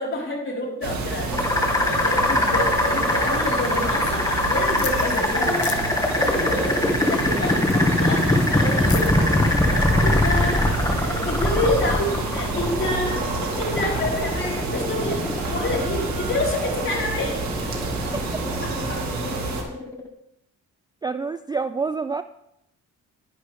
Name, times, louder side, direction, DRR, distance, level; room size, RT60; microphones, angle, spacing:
voice 1, 0.0-1.4 1.7-5.9 6.2-10.7 11.0-17.8, left 2 dB, 40° left, -3 dB, 4.5 m, -28 dB
sound 1, 0.8-19.6, right 3 dB, 65° right, 2.3 m, -29 dB
sound 2, 1.3-20.1, left 1 dB, 10° left, 1.7 m, -23 dB
sound 3, 4.8-10.4, left 10 dB, 75° left, 1.1 m, -40 dB
voice 2, 21.0-22.2, right 4 dB, 15° right, 12 dB, 0.3 m, -27 dB
11.0 x 10.0 x 3.5 m, 0.81 s
cardioid pair, 90°, 30 cm